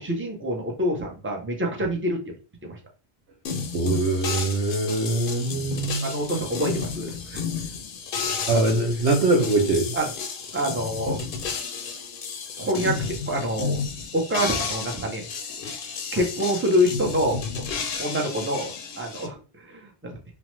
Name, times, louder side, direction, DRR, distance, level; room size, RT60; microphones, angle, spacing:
voice 1, 0.0-2.2 2.6-2.8 6.0-7.4 8.2-8.6 9.9-10.1 10.5-11.2 12.6-13.8 14.1-15.3 16.1-17.4 18.0-20.1, equal, 15° right, 0 dB, 0.4 m, -26 dB
sound 1, 3.4-19.3, left 5 dB, 60° left, 0.7 m, -32 dB
voice 2, 3.7-6.4 8.4-9.9, right 2 dB, 85° right, 1 dB, 0.9 m, -23 dB
3.0 x 2.0 x 3.0 m, 0.35 s
omnidirectional pair, 1.1 m